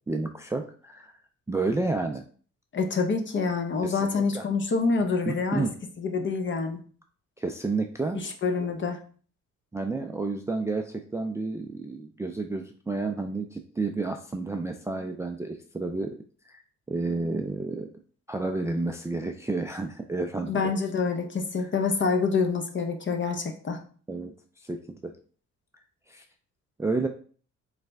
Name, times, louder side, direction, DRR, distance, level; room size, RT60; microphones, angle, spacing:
voice 1, 0.1-1.1 1.5-2.2 3.8-4.4 5.3-5.8 7.4-8.2 9.7-16.2 16.5-16.6 16.9-17.9 18.3-20.7 21.6-21.7 24.1-25.2 26.1-26.2 26.8-27.1, right 3 dB, 10° right, 5 dB, 0.3 m, -31 dB
voice 2, 2.7-5.7 6.0-6.8 8.1-9.0 20.5-23.8, left 4 dB, 40° left, 6 dB, 0.8 m, -27 dB
4.1 x 3.2 x 3.4 m, 0.43 s
cardioid pair, 90°, 30 cm